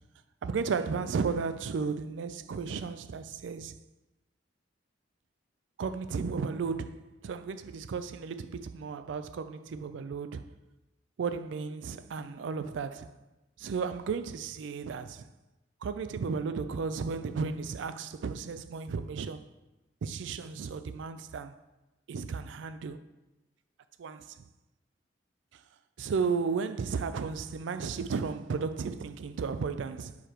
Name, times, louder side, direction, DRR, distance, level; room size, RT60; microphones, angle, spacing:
voice 1, 0.4-3.7 5.8-10.5 11.2-13.2 13.6-15.3 15.8-19.4 20.0-21.5 22.1-23.0 24.0-24.2 26.0-30.2, right 5 dB, 80° right, 0.4 m, -34 dB
4.8 x 4.4 x 4.9 m
head